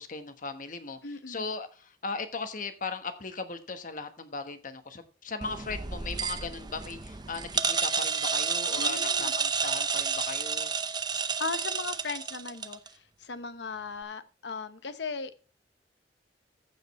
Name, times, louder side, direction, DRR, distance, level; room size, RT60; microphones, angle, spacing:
voice 1, 0.0-1.0 1.3-10.7, left 4 dB, 50° left, 9 dB, 1.2 m, -38 dB
voice 2, 1.0-1.5 8.8-9.3 11.4-15.5, left 4 dB, 75° left, 12 dB, 0.9 m, -37 dB
sound 1, 5.4-12.9, right 5 dB, 25° right, 0.6 m, -30 dB
15.0 x 5.2 x 4.2 m, 0.36 s
head